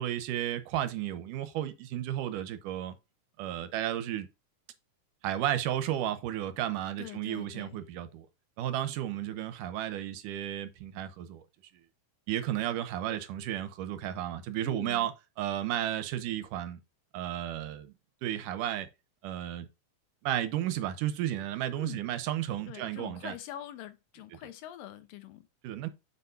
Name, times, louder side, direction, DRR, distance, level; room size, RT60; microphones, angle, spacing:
voice 1, 0.0-3.0 3.4-4.3 5.2-8.3 8.6-11.4 12.3-15.1 15.4-16.8 17.1-17.9 18.2-18.9 19.2-19.7 20.2-23.3 25.6-25.9, right 12 dB, 80° right, 2.3 m, -33 dB
voice 2, 7.0-7.8 14.6-15.1 21.8-22.0 22.7-25.5, left 12 dB, 90° left, 2.7 m, -44 dB
7.1 x 6.9 x 2.7 m
omnidirectional pair, 3.8 m